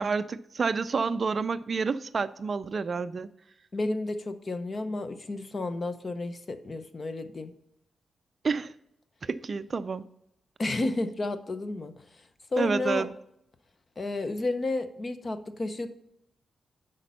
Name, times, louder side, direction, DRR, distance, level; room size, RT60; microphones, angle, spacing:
voice 1, 0.0-3.3 8.4-8.7 9.2-10.1 12.6-13.1, right 4 dB, 40° right, 13 dB, 0.3 m, -29 dB
voice 2, 3.7-7.5 10.6-13.1 14.0-15.9, left 2 dB, 30° left, 10 dB, 0.7 m, -32 dB
8.3 x 5.2 x 5.5 m, 0.79 s
wide cardioid pair, 135°, 0 cm